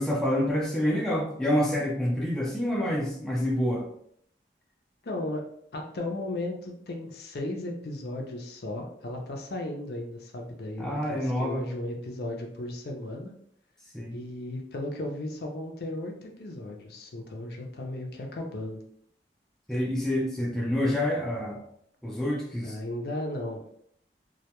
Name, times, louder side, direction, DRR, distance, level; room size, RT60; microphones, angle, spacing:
voice 1, 0.0-3.9 10.8-11.6 13.9-14.2 19.7-21.6 22.0-22.8, left 1 dB, 5° left, -4 dB, 0.4 m, -27 dB
voice 2, 5.0-5.4 5.7-13.3 14.1-18.8 22.6-23.6, left 1 dB, 65° left, 1 dB, 0.5 m, -35 dB
2.2 x 2.2 x 2.9 m, 0.68 s
head